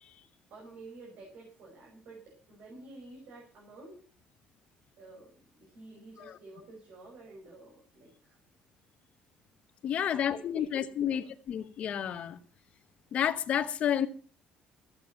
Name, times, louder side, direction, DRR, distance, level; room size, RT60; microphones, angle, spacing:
voice 1, 0.5-4.0 5.0-8.4 10.0-11.3, right 2 dB, 60° right, 5.9 m, -51 dB
voice 2, 9.8-11.2 11.5-12.4 13.1-14.1, left 9 dB, 45° left, 1.0 m, -30 dB
14.5 x 8.8 x 6.4 m
cardioid pair, 170°, 3 cm